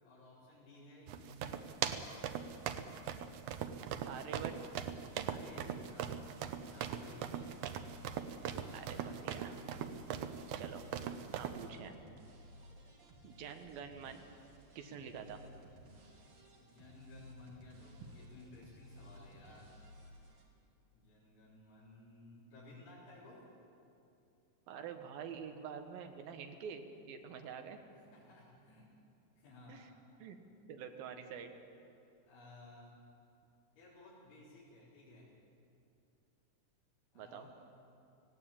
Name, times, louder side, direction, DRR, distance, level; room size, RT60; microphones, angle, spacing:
voice 1, 0.0-1.6 4.3-4.4 5.3-6.2 6.7-7.4 8.5-9.1 16.6-19.7 20.9-23.4 27.4-27.5 28.1-28.8 29.4-29.9 32.3-33.0 33.8-35.3 37.1-37.6, left 2 dB, 70° left, -10 dB, 6.0 m, -57 dB
sound 1, 1.1-11.7, right 8 dB, 85° right, 1.7 m, -40 dB
voice 2, 4.1-4.5 8.7-9.6 10.6-10.8 11.4-12.0 13.2-14.3 14.8-15.4 24.7-27.8 29.7-29.9 30.2-30.4 30.7-31.5 37.2-37.5, right 7 dB, 70° right, 6 dB, 2.9 m, -47 dB
sound 2, 6.6-20.4, equal, 45° right, 3.2 m, -57 dB
19.0 x 16.5 x 8.6 m, 2.7 s
omnidirectional pair, 4.7 m